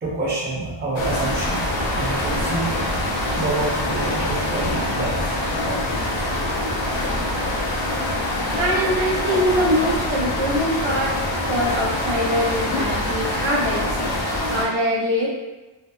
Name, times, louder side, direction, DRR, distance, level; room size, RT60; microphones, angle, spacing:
voice 1, 0.0-2.7 3.4-5.3, right 2 dB, 20° right, -6 dB, 0.5 m, -27 dB
sound 1, 0.9-14.6, left 1 dB, 65° left, 0.6 m, -24 dB
voice 2, 8.5-13.8 14.2-15.3, equal, 65° right, -3 dB, 0.7 m, -23 dB
2.6 x 2.0 x 2.2 m, 1.1 s
wide cardioid pair, 155°, 49 cm